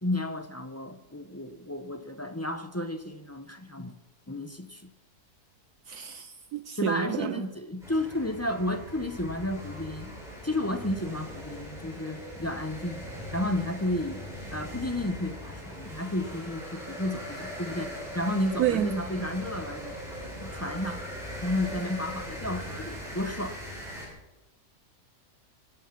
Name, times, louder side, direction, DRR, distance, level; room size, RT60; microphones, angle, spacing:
voice 1, 0.0-3.9 4.3-4.9 6.8-10.1 10.4-13.1 13.3-14.2 14.5-20.0 20.4-21.1 21.4-23.7, left 1 dB, 15° left, 0.5 m, -32 dB
voice 2, 5.9-7.4 18.6-18.9, right 11 dB, 70° right, 1.1 m, -29 dB
sound 1, 7.8-24.1, equal, ahead, 6.1 m, -40 dB
23.5 x 10.0 x 5.9 m
omnidirectional pair, 1.7 m